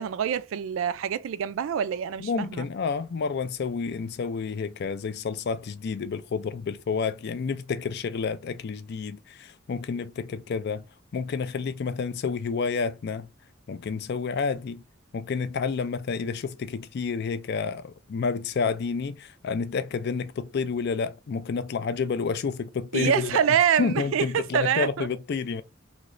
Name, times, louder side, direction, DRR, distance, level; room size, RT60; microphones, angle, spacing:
voice 1, 0.0-2.7 22.9-25.1, right 8 dB, 70° right, 0.3 m, -25 dB
voice 2, 2.2-10.8 11.1-13.3 13.7-14.8 15.1-23.4 23.8-25.6, left 5 dB, 55° left, 0.4 m, -29 dB
3.1 x 2.8 x 2.5 m
head